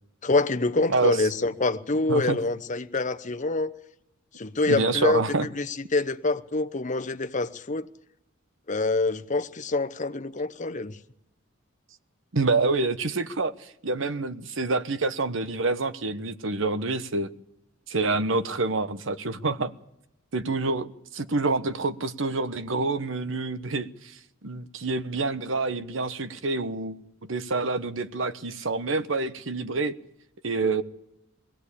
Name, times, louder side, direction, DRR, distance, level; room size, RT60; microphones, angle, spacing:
voice 1, 0.2-3.7 4.4-5.2 5.5-7.9 8.7-11.0, left 3 dB, 40° left, 0.9 m, -26 dB
voice 2, 4.7-5.5 12.3-17.3 17.9-19.7 20.3-29.9 30.4-30.8, right 3 dB, 70° right, 1.1 m, -27 dB
21.5 x 16.0 x 8.4 m
head